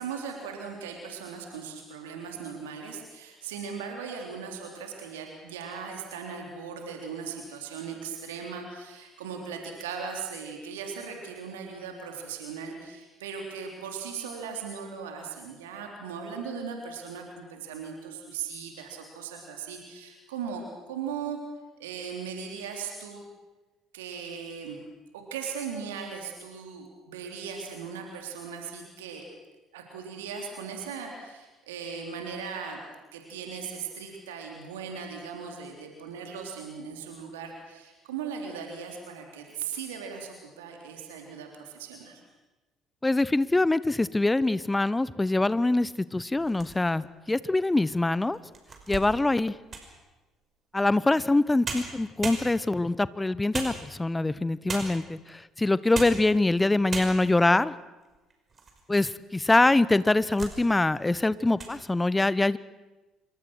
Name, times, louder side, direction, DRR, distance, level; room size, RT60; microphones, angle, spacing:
voice 1, 0.0-21.4 21.8-23.2 23.9-24.8 25.1-29.3 29.7-32.8 33.1-42.2, right 6 dB, 75° right, 2 dB, 3.5 m, -38 dB
voice 2, 43.0-48.4 48.9-49.5 50.7-57.7 58.9-62.6, left 2 dB, 15° left, 18 dB, 1.0 m, -24 dB
sound 1, 46.4-47.1 47.7-47.8 48.3-50.0 51.3-51.4 51.6-52.9 53.5-54.2 54.7-55.1 55.8-56.3 56.6-56.7 56.9-57.5 58.0-58.8 59.1-59.2 59.9-60.6 61.0-61.2 61.5-61.8, right 4 dB, 35° right, 5.6 m, -37 dB
27.0 x 24.0 x 6.3 m, 1.2 s
figure-of-eight pair, 50°, 0 cm